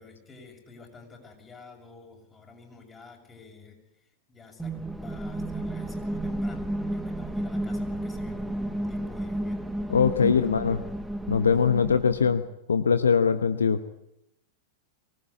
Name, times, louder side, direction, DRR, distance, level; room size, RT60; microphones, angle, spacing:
voice 1, 0.0-9.6 10.1-10.8, left 4 dB, 20° left, 2 dB, 7.3 m, -49 dB
sound 1, 4.6-12.4, right 1 dB, 5° right, 1.6 m, -32 dB
voice 2, 9.9-10.8 11.3-12.4 12.7-13.8, left 6 dB, 80° left, 12 dB, 1.0 m, -22 dB
24.0 x 18.5 x 8.5 m, 0.82 s
figure-of-eight pair, 95°, 0 cm